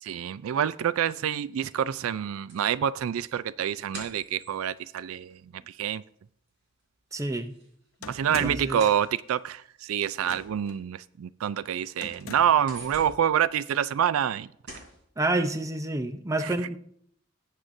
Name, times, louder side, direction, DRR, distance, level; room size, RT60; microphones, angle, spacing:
voice 1, 0.0-5.4 5.7-6.0 8.1-14.5, right 9 dB, 80° right, 0.3 m, -27 dB
sound 1, 2.5-6.2 6.5-9.7 10.4-10.5 11.0-11.1 11.5-12.0 12.3-14.4 14.7-15.0, right 2 dB, 55° right, 3.6 m, -47 dB
voice 2, 7.1-7.5 8.4-8.8 15.2-16.8, right 2 dB, 15° right, 0.6 m, -28 dB
sound 2, 8.0-8.8 10.2-10.7 12.0-12.7, left 3 dB, 85° left, 0.8 m, -40 dB
18.0 x 7.4 x 2.6 m
head